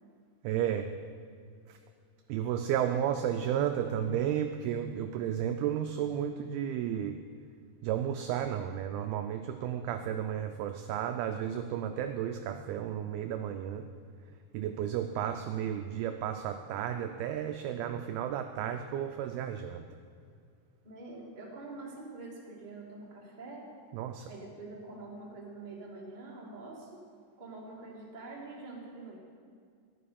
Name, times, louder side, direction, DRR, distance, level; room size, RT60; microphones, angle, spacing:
voice 1, 0.4-0.9 1.7-1.8 2.3-7.2 7.8-13.9 14.5-19.8 23.9-24.3, right 9 dB, 80° right, 6 dB, 2.2 m, -33 dB
voice 2, 20.8-23.7 24.3-27.0 27.4-29.2, right 3 dB, 15° right, -4 dB, 1.6 m, -45 dB
14.5 x 11.0 x 7.0 m, 2.2 s
omnidirectional pair, 5.0 m